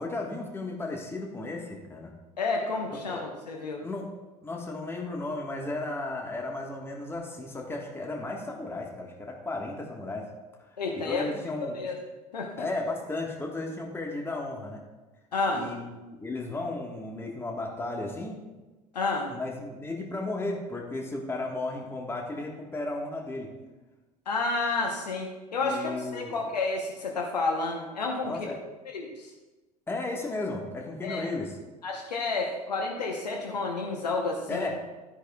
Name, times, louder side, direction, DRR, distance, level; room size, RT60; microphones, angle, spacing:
voice 1, 0.0-2.1 3.1-3.2 3.8-4.1 4.4-10.3 10.6-11.8 12.6-14.8 15.5-18.4 19.3-23.5 25.6-26.4 28.2-28.6 29.9-31.6 34.5-34.8, left 2 dB, 10° left, 0 dB, 1.5 m, -34 dB
voice 2, 2.4-3.8 10.8-11.3 11.6-11.9 12.3-12.7 15.3-15.7 18.9-19.3 24.3-28.3 28.9-29.3 31.0-31.3 31.8-34.7, left 3 dB, 80° left, 1 dB, 1.0 m, -30 dB
12.0 x 9.9 x 2.3 m, 1.1 s
figure-of-eight pair, 75°, 21 cm